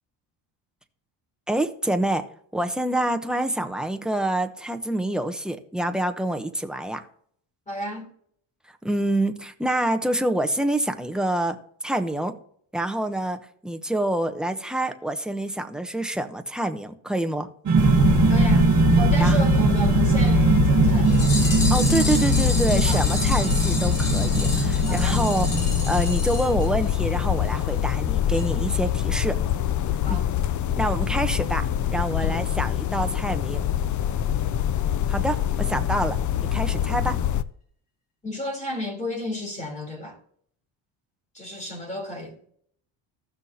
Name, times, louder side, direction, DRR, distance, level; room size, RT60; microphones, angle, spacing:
voice 1, 1.5-2.2 2.5-7.0 8.8-11.6 11.8-12.3 12.7-17.5 19.2-19.5 21.7-25.5 25.9-29.4 30.1-30.2 30.8-33.6 35.1-36.2 36.5-37.2, right 1 dB, ahead, 0.8 m, -26 dB
voice 2, 7.7-8.1 18.3-18.7 19.0-21.3 22.8-23.0 24.9-25.2 30.0-30.3 32.2-32.4 38.2-40.2 41.3-42.5, left 1 dB, 15° left, 3.4 m, -33 dB
sound 1, 17.7-26.3, right 5 dB, 40° right, 1.5 m, -21 dB
sound 2, 17.8-37.4, left 11 dB, 40° left, 0.5 m, -24 dB
sound 3, 21.1-27.2 27.5-27.6 27.9-28.0 28.3-28.5 28.7-28.8, left 3 dB, 65° left, 3.5 m, -32 dB
15.5 x 6.2 x 2.8 m
cardioid pair, 120°, 47 cm